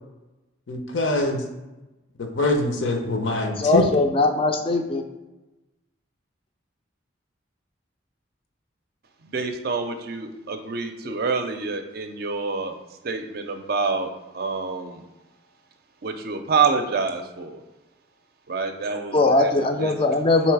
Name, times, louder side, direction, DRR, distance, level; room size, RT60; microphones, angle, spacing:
voice 1, 0.7-1.4 2.2-3.8, left 2 dB, 75° left, 4 dB, 0.7 m, -24 dB
voice 2, 3.6-5.0 19.1-20.5, left 2 dB, 30° left, 5 dB, 0.4 m, -20 dB
voice 3, 9.2-12.7 13.0-15.0 16.0-17.6 18.5-19.9, right 4 dB, 50° right, 6 dB, 0.4 m, -27 dB
3.8 x 3.0 x 4.6 m, 1.0 s
head